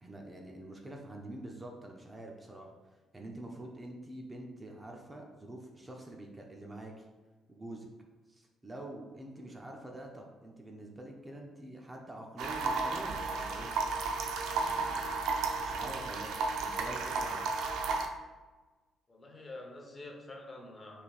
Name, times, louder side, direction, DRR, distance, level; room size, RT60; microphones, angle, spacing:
voice 1, 0.0-2.7 3.1-7.0 7.5-7.9 8.3-13.7 14.5-17.5, right 1 dB, 20° right, 0 dB, 0.6 m, -46 dB
sound 1, 12.4-18.1, right 4 dB, 90° right, 0.5 m, -33 dB
voice 2, 19.1-21.0, left 2 dB, 30° left, 1 dB, 0.8 m, -47 dB
5.9 x 3.3 x 2.4 m, 1.3 s
cardioid pair, 110°, 0 cm